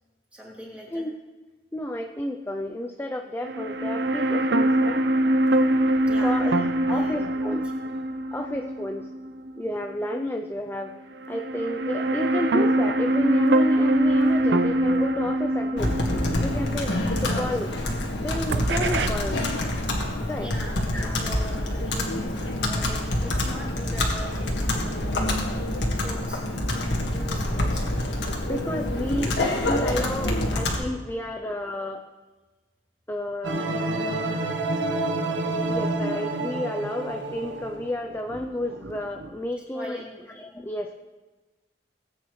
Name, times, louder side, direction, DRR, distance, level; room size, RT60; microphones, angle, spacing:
voice 1, 0.3-1.0 6.1-7.2 7.8-7.9 20.4-25.3 26.0-26.4 26.7-26.8 27.1-27.9 39.7-40.3, equal, 5° right, -5 dB, 3.0 m, -41 dB
voice 2, 1.7-5.0 6.2-6.6 6.9-7.7 8.3-9.1 9.6-11.0 11.3-16.0 16.4-17.7 18.2-19.5 20.2-20.5 20.9-21.2 28.4-32.1 33.1-33.7 35.7-41.1, left 1 dB, 15° left, 4 dB, 0.5 m, -31 dB
sound 1, 3.4-9.7 10.0-10.1 11.2-18.1 18.5-19.1, right 1 dB, 70° right, 0.7 m, -24 dB
Computer keyboard, 15.8-30.8, left 1 dB, 75° left, 1.8 m, -26 dB
sound 2, 33.4-39.3, right 2 dB, 90° right, 1.0 m, -29 dB
18.5 x 8.9 x 3.2 m, 1.2 s
head